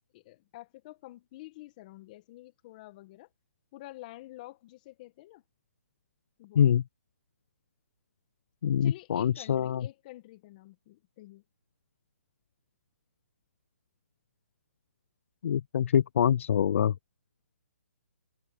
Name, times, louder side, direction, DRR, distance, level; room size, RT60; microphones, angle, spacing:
voice 1, 0.1-3.3 3.7-5.4 6.4-6.7 8.8-11.4, left 18 dB, 30° left, 1.6 m, -49 dB
voice 2, 8.6-9.8 15.4-16.9, left 9 dB, 55° left, 0.3 m, -25 dB
hypercardioid pair, 155°, 8 cm